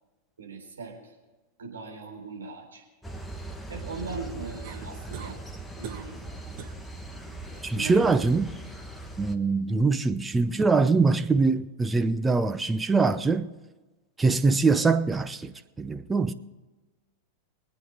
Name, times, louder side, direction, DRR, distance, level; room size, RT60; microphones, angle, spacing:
voice 1, 0.4-1.1 1.6-2.8 3.7-5.4 5.8-6.2 7.7-8.1, right 4 dB, 70° right, 4.0 m, -39 dB
sound 1, 3.0-9.4, right 2 dB, 5° left, 1.3 m, -40 dB
sound 2, 4.6-5.4 5.8-6.2 6.6-6.8 7.3-7.7 9.5-9.6, right 8 dB, 45° right, 1.5 m, -42 dB
voice 2, 7.6-8.5 9.2-13.5 14.2-16.3, right 4 dB, 10° right, 0.8 m, -23 dB
24.0 x 9.2 x 3.8 m
figure-of-eight pair, 90°, 0 cm